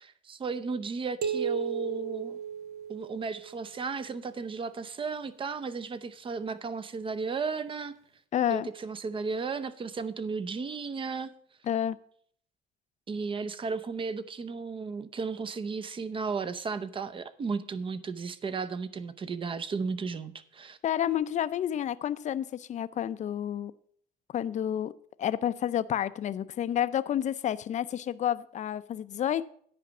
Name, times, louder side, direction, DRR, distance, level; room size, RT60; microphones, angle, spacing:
voice 1, 0.0-2.4 2.9-7.9 8.5-11.3 13.1-20.8, right 4 dB, 30° right, 14 dB, 0.7 m, -34 dB
sound 1, 1.2-3.6, right 7 dB, 70° right, 1.0 m, -34 dB
voice 2, 8.3-8.7 11.7-12.0 20.8-23.7 24.3-24.9 25.2-29.5, left 10 dB, 45° left, 15 dB, 0.5 m, -30 dB
10.0 x 5.2 x 7.1 m, 0.62 s
cardioid pair, 110°, 17 cm